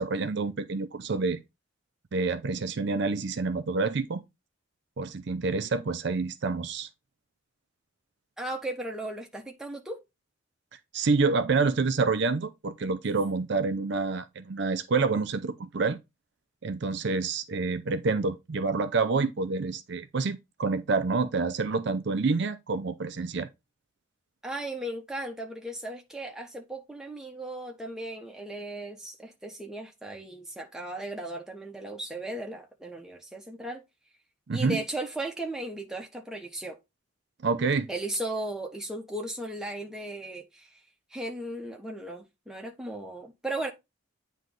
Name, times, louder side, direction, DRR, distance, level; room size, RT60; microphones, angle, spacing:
voice 1, 0.0-1.4 2.1-4.2 5.0-6.9 10.9-16.0 16.6-23.5 34.5-34.8 37.4-37.9, right 4 dB, 55° right, 0.5 m, -28 dB
voice 2, 8.4-10.0 24.4-33.8 34.5-36.8 37.9-40.8 41.1-43.7, right 1 dB, 5° right, 1.0 m, -36 dB
9.1 x 3.1 x 3.7 m
head